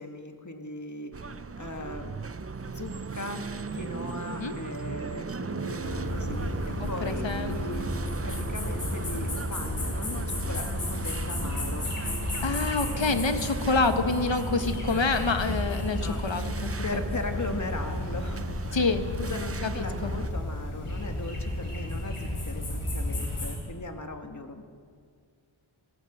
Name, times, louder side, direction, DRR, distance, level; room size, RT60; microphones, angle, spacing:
voice 1, 0.0-2.2 2.6-7.9 8.2-11.9 14.5-14.7 15.9-16.5 16.8-18.6 19.2-24.7, left 2 dB, 35° left, 5 dB, 2.1 m, -38 dB
sound 1, 1.1-20.3, right 4 dB, 30° right, 0.7 m, -37 dB
sound 2, 5.8-23.5, left 1 dB, 85° left, 6.3 m, -33 dB
voice 2, 7.0-7.5 12.4-16.4 18.7-19.0 20.0-20.1, left 3 dB, 60° left, 8 dB, 1.7 m, -27 dB
21.0 x 16.0 x 8.0 m, 2.2 s
wide cardioid pair, 70°, 50 cm